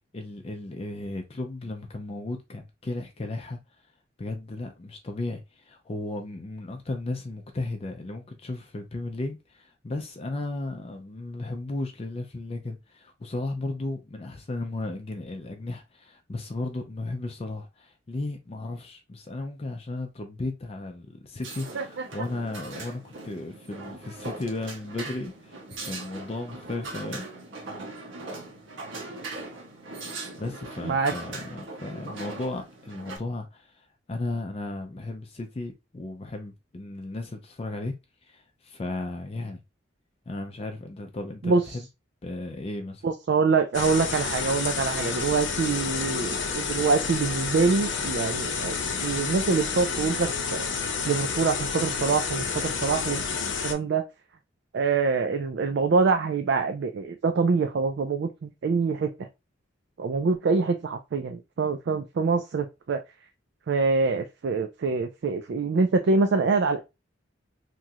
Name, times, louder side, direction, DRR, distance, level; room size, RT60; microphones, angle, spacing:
voice 1, 0.1-3.6 4.2-27.3 30.4-37.9 38.2-39.6 40.3-41.8 42.2-43.0, left 2 dB, 30° left, 0.4 m, -35 dB
sound 1, 21.4-33.2, right 2 dB, 85° right, 0.9 m, -40 dB
voice 2, 21.7-22.3 30.8-31.1 41.4-41.8 43.0-50.7 51.1-53.2 53.6-54.0 54.7-59.3 60.0-63.0 63.7-66.8, right 4 dB, 60° right, 0.3 m, -25 dB
sound 2, 43.7-53.7, left 5 dB, 75° left, 0.6 m, -30 dB
3.0 x 2.4 x 2.6 m
head